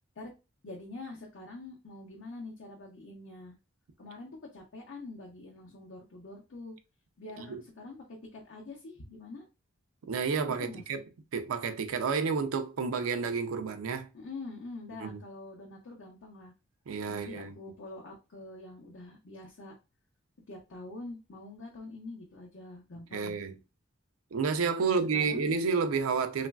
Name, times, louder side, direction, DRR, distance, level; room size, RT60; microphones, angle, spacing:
voice 1, 0.6-3.6 4.0-6.8 7.2-8.1 8.3-9.4 10.6-11.0 14.1-16.5 17.1-19.7 20.5-23.4 24.8-25.5, left 2 dB, 65° left, 0.6 m, -45 dB
voice 2, 10.1-11.0 11.3-14.1 15.0-15.2 16.9-17.6 23.1-23.5 24.3-26.5, right 5 dB, 90° right, 0.4 m, -30 dB
3.0 x 2.4 x 2.2 m
head